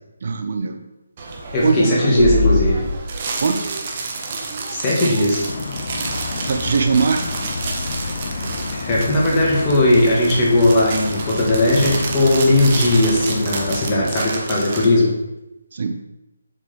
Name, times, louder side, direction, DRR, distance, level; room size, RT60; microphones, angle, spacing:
voice 1, 0.2-0.8 1.6-2.3 3.4-3.7 6.4-7.2 15.7-16.0, right 5 dB, 55° right, 7 dB, 0.5 m, -20 dB
sound 1, 1.2-14.9, right 2 dB, 35° right, 0.9 m, -28 dB
voice 2, 1.5-2.9 4.7-5.4 8.7-15.2, left 1 dB, 20° left, -4 dB, 1.6 m, -17 dB
sound 2, 5.4-14.1, left 4 dB, 50° left, 0.5 m, -30 dB
7.4 x 3.8 x 3.4 m, 0.94 s
figure-of-eight pair, 160°, 0 cm